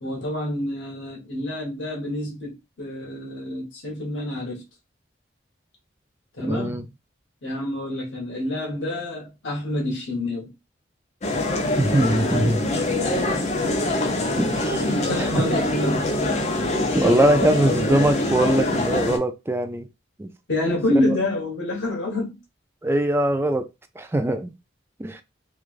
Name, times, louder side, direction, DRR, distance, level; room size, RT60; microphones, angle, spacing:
voice 1, 0.0-4.6 6.3-6.9 7.4-10.5 14.8-16.1 20.5-22.4, left 1 dB, 90° left, 1.1 m, -27 dB
voice 2, 6.4-6.9 11.8-12.6 14.3-14.8 15.2-15.6 16.3-16.4 16.9-19.9 20.2-20.3 21.0-21.2 22.8-23.7 24.0-24.5 25.0-25.2, right 1 dB, 15° right, 0.3 m, -22 dB
sound 1, 11.2-19.2, left 1 dB, 35° left, 0.6 m, -24 dB
3.1 x 2.4 x 2.4 m
head